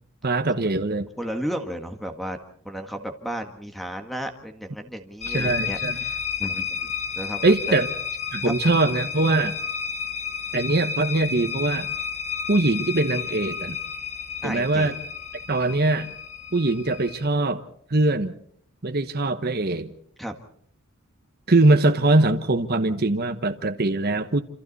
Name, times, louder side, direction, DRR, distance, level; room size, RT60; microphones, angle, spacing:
voice 1, 0.2-1.1 5.3-6.0 7.4-7.9 8.3-9.5 10.5-11.9 12.5-13.8 14.4-15.0 15.5-16.1 16.5-17.6 17.9-18.3 18.8-19.9 21.5-24.4, right 2 dB, 45° right, 7 dB, 1.1 m, -22 dB
voice 2, 1.2-2.4 2.6-7.8 14.4-14.9 20.2-20.3, equal, ahead, 6 dB, 1.7 m, -34 dB
sound 1, 5.2-17.3, left 6 dB, 30° left, 1.4 m, -31 dB
27.5 x 26.5 x 4.2 m, 0.63 s
head